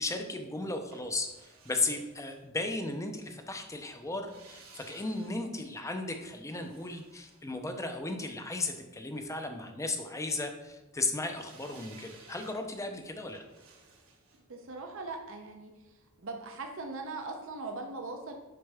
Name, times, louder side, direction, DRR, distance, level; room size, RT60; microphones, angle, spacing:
voice 1, 0.0-13.4, left 2 dB, 15° left, 5 dB, 0.6 m, -35 dB
sound 1, 0.9-3.0 4.1-8.3 11.3-16.3 16.6-16.7, right 4 dB, 80° right, 1.5 m, -58 dB
voice 2, 14.5-15.7 16.2-18.3, right 3 dB, 65° right, 3 dB, 0.7 m, -40 dB
6.7 x 5.3 x 3.5 m, 1.0 s
head